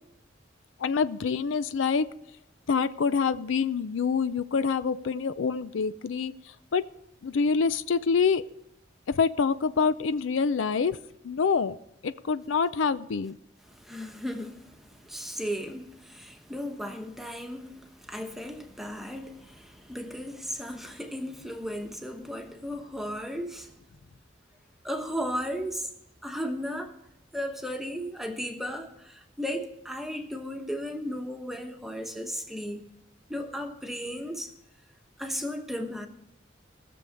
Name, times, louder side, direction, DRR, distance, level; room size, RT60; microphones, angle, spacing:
voice 1, 0.8-2.1 2.7-6.3 6.7-6.9 7.2-8.5 9.1-11.0 11.2-11.8 12.0-13.4, left 5 dB, 80° left, 0.5 m, -26 dB
voice 2, 13.7-23.7 24.8-25.9 26.2-27.0 27.3-32.9 33.3-34.5 35.2-36.1, equal, ahead, 1.0 m, -35 dB
18.0 x 7.0 x 5.0 m
head